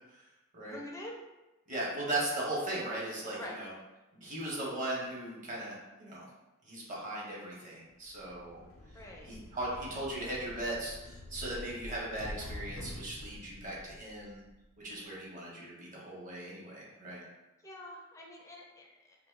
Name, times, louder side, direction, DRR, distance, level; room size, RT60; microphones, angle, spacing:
voice 1, 0.6-1.2 3.4-3.6 8.9-9.4 17.6-19.2, left 1 dB, 15° left, -2 dB, 0.5 m, -46 dB
voice 2, 1.7-3.7 4.1-6.2 6.6-8.6 9.0-14.4 14.8-17.2, right 1 dB, 40° right, -4 dB, 0.9 m, -38 dB
sound 1, 8.1-14.8, left 1 dB, 75° left, 0.5 m, -47 dB
2.9 x 2.0 x 3.6 m, 1.0 s
head